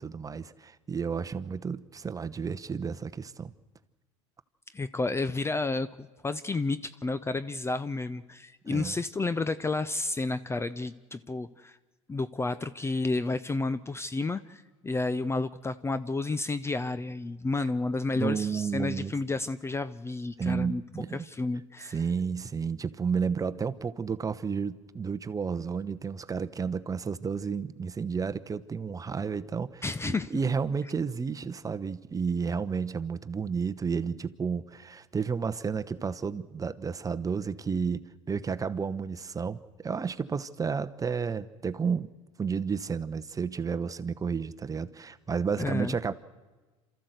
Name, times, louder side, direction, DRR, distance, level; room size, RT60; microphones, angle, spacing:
voice 1, 0.0-3.5 8.7-9.0 18.1-19.1 20.4-21.3 21.9-42.1 42.4-46.1, right 5 dB, 20° right, 12 dB, 0.9 m, -32 dB
voice 2, 4.7-11.8 12.1-20.8 21.1-22.0 29.8-30.3 45.6-45.9, left 3 dB, 15° left, 15 dB, 0.6 m, -31 dB
28.0 x 14.0 x 8.0 m, 1.2 s
hypercardioid pair, 80°, 16 cm